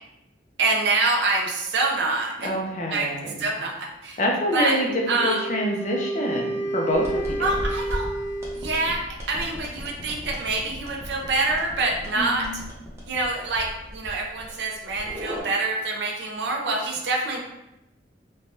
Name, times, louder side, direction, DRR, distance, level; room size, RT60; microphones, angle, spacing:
voice 1, 0.6-2.6 2.9-3.1 3.4-4.2 4.5-4.8 5.1-5.4 7.4-8.1 8.5-12.6 13.1-17.4, right 3 dB, 70° right, 0 dB, 0.4 m, -26 dB
voice 2, 2.4-3.4 4.2-4.9 5.2-7.5 12.2-12.6, equal, 45° left, 0 dB, 0.5 m, -26 dB
Wind instrument woodwind instrument, 4.8-9.1, right 1 dB, 70° left, 0.9 m, -31 dB
sound 1, 6.9-15.4, equal, 15° right, 0.6 m, -37 dB
3.2 x 2.2 x 2.6 m, 0.90 s
head